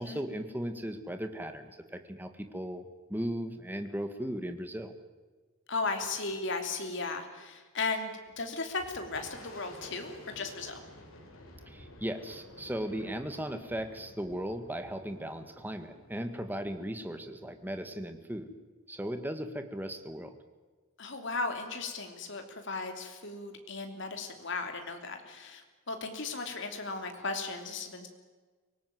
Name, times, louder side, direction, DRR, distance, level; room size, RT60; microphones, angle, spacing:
voice 1, 0.0-2.8 3.1-4.9 11.7-18.5 18.9-20.4, equal, 10° right, 8 dB, 1.7 m, -37 dB
voice 2, 5.7-10.8 21.0-28.1, left 3 dB, 60° left, 5 dB, 3.2 m, -36 dB
Boom, 8.3-17.7, left 1 dB, 75° left, 4.8 m, -52 dB
24.5 x 18.5 x 9.4 m, 1.4 s
head